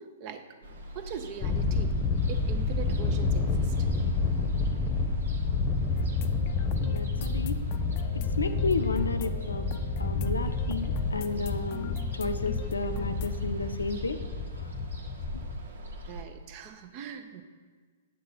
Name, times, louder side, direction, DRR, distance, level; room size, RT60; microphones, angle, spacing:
voice 1, 0.0-2.0 2.3-3.9 7.0-7.1 16.0-17.4, right 8 dB, 40° right, 9 dB, 0.7 m, -42 dB
Ocean, 0.6-16.2, right 2 dB, 75° right, 0.9 m, -47 dB
Thunder, 1.4-15.6, left 3 dB, 25° left, 0.9 m, -29 dB
sound 1, 6.0-13.3, left 10 dB, 40° left, 0.4 m, -44 dB
voice 2, 6.8-7.6 8.1-14.2 14.5-14.7, left 3 dB, 90° left, 9 dB, 0.6 m, -32 dB
8.2 x 7.5 x 4.1 m, 1.5 s
hypercardioid pair, 120°, 0 cm